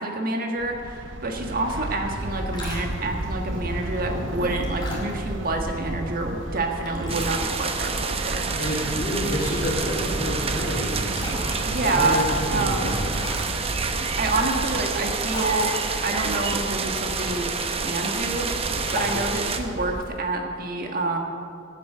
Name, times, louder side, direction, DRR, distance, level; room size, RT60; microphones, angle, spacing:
voice 1, 0.0-8.5 11.7-12.2 12.5-13.1 14.2-15.7 16.0-21.2, right 2 dB, 50° right, 3 dB, 1.6 m, -28 dB
sound 1, 0.6-20.0, right 1 dB, 80° right, 0.9 m, -33 dB
voice 2, 2.2-2.5 8.6-11.2 11.7-13.2 19.0-19.3, equal, 45° left, -5 dB, 2.9 m, -29 dB
sound 2, 2.2-20.2, left 1 dB, 25° left, 2.8 m, -41 dB
sound 3, 7.1-19.6, right 5 dB, 30° right, 0.8 m, -29 dB
15.0 x 8.3 x 6.7 m, 2.5 s
head